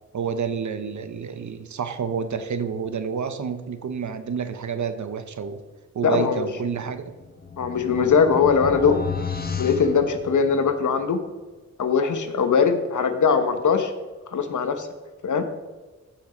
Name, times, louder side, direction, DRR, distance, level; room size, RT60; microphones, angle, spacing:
voice 1, 0.1-5.6 5.9-7.2, right 6 dB, 75° right, 10 dB, 1.0 m, -29 dB
voice 2, 6.0-6.4 7.6-9.0 9.6-11.2 11.8-13.9 14.3-14.9 15.2-15.5, left 6 dB, 85° left, 8 dB, 1.2 m, -21 dB
sound 1, 7.0-10.9, left 5 dB, 30° left, 1.1 m, -32 dB
15.0 x 5.9 x 5.2 m, 1.3 s
wide cardioid pair, 100°, 29 cm